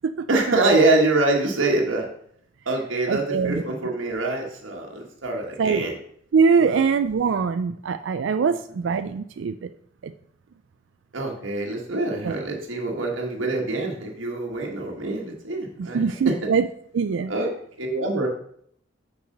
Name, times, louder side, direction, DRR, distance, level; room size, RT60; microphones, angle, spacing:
voice 1, 0.3-2.1 2.6-6.0 6.6-6.8 8.4-8.6 11.1-16.3 17.3-17.5 17.8-18.3, right 2 dB, 85° right, 0 dB, 1.4 m, -25 dB
voice 2, 3.1-3.6 5.6-5.8 6.3-9.7 10.0-10.1 12.2-12.3 15.8-16.7 16.9-17.3, right 5 dB, 70° right, 10 dB, 0.4 m, -22 dB
6.5 x 4.8 x 6.5 m, 0.66 s
head